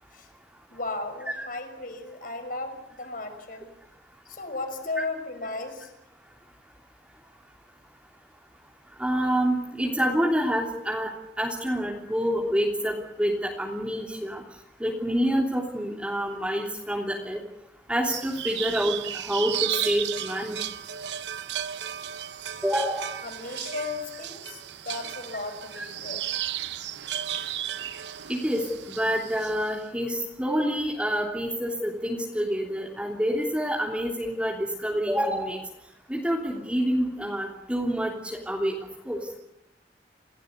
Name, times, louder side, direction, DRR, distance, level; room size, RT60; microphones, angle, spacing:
voice 1, 0.7-3.7 4.3-5.9 22.5-22.6 23.2-26.2 27.3-27.5, left 3 dB, 50° left, 6 dB, 5.7 m, -35 dB
voice 2, 9.0-11.1 11.4-14.4 14.8-17.4 17.9-20.6 22.6-23.1 25.7-25.8 28.3-35.6 36.1-38.8 39.0-39.2, equal, 5° right, -1 dB, 3.3 m, -27 dB
sound 1, 18.0-29.7, right 11 dB, 85° right, 0.9 m, -34 dB
29.0 x 17.5 x 8.3 m, 0.83 s
head